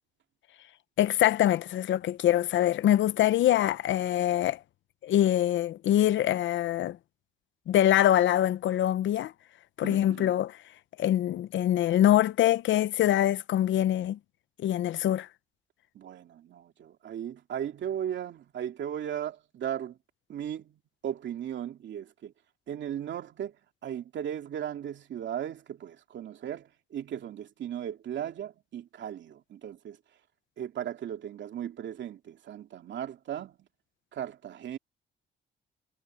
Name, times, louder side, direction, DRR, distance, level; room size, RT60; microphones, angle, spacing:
voice 1, 1.0-4.6 5.0-7.0 7.7-9.3 9.8-10.5 11.0-14.2 14.6-15.3, left 12 dB, 80° left, 0.8 m, -24 dB
voice 2, 9.8-10.4 15.9-20.0 20.3-22.3 22.7-23.5 23.8-30.0 30.6-33.7 34.1-34.8, right 10 dB, 70° right, 2.7 m, -37 dB
cardioid pair, 90°, 19 cm